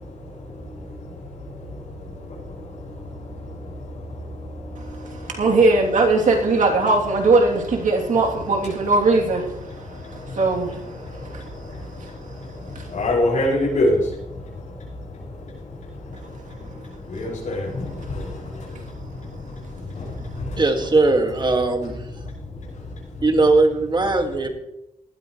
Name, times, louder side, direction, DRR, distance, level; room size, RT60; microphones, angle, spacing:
voice 1, 4.8-10.0 10.3-11.4 12.0-12.1 12.7-12.9, right 3 dB, 80° right, 3.1 m, -20 dB
voice 2, 12.9-14.0 17.1-18.3 19.9-20.1 20.4-20.6, left 1 dB, 70° left, 6.1 m, -22 dB
voice 3, 20.6-22.0 23.2-24.5, right 3 dB, 35° right, 2.1 m, -19 dB
19.0 x 13.0 x 3.2 m
wide cardioid pair, 100°, 13 cm